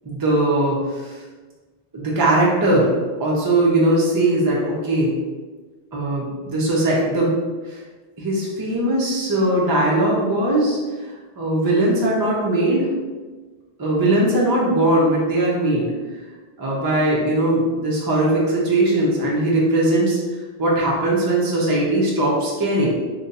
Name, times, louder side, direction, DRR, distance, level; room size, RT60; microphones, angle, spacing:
voice 1, 0.1-1.2 1.9-2.9 3.2-5.2 5.9-7.4 7.7-7.8 8.2-10.8 11.4-12.9 13.8-15.9 16.6-20.2 20.6-23.0, right 1 dB, 30° right, -4 dB, 0.5 m, -19 dB
2.5 x 2.2 x 3.9 m, 1.3 s
omnidirectional pair, 1.1 m